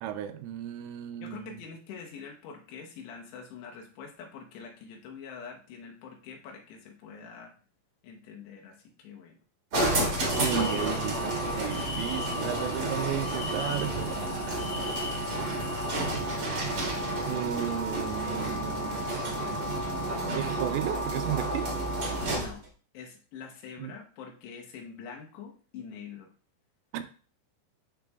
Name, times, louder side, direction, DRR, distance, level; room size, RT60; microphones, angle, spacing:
voice 1, 0.0-1.6 10.4-14.9 15.3-15.6 16.1-16.7 17.3-19.9 20.3-21.7 23.8-23.9 26.9-27.0, right 11 dB, 85° right, 8 dB, 2.8 m, -35 dB
voice 2, 1.2-7.5 8.0-9.4 22.3-22.6 22.9-26.3, left 6 dB, 75° left, 1 dB, 2.8 m, -45 dB
sound 1, 9.7-22.6, right 1 dB, 55° right, 1.5 m, -31 dB
sound 2, 10.1-16.1, left 2 dB, 45° left, 4.0 m, -40 dB
10.5 x 4.1 x 2.3 m, 0.40 s
omnidirectional pair, 5.3 m